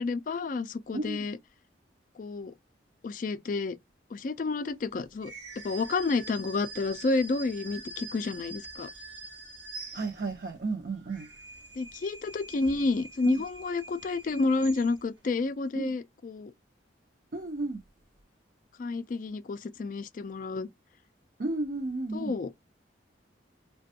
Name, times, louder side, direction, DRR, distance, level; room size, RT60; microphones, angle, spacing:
voice 1, 0.0-1.4 2.2-2.5 3.0-3.8 4.1-5.3 5.6-8.9 11.8-16.5 18.8-20.7 22.1-22.5, left 3 dB, 45° left, 0.3 m, -30 dB
voice 2, 0.9-1.3 9.9-11.3 13.3-13.4 15.7-15.9 17.3-17.8 21.4-22.3, right 2 dB, 50° right, 0.5 m, -33 dB
sound 1, 5.2-10.5 10.9-15.2, right 3 dB, 70° right, 0.9 m, -45 dB
3.3 x 2.2 x 2.7 m
head